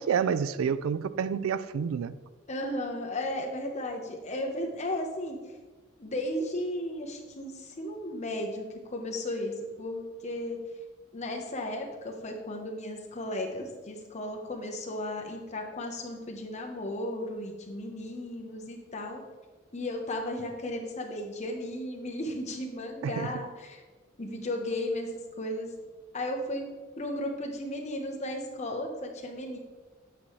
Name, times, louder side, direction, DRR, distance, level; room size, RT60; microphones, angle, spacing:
voice 1, 0.0-2.1 23.0-23.3, right 7 dB, 80° right, 15 dB, 0.3 m, -29 dB
voice 2, 2.5-5.4 6.0-10.6 11.1-19.2 19.7-23.8 24.2-25.7 26.1-26.7 27.0-29.6, left 1 dB, 35° left, 1 dB, 1.0 m, -35 dB
8.5 x 5.6 x 3.2 m, 1.3 s
head